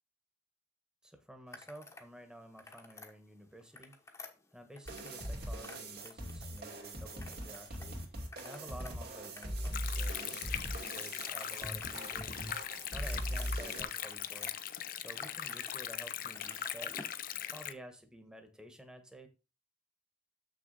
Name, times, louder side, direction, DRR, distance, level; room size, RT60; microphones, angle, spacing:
voice 1, 1.0-4.0 4.5-8.0 8.4-12.5 12.9-14.5 15.0-17.0 17.5-19.3, equal, 5° right, 6 dB, 1.3 m, -52 dB
sound 1, 1.5-2.1 2.4-3.1 3.6-5.3 5.6-6.8 7.2-7.9 8.2-12.3 12.6-14.5 15.0-15.7 16.0-17.2, left 3 dB, 15° left, 1.1 m, -52 dB
sound 2, 4.9-13.8, equal, 60° right, 2.4 m, -40 dB
Stream, 9.7-17.7, left 10 dB, 50° left, 0.6 m, -40 dB
7.1 x 6.3 x 4.1 m, 0.30 s
head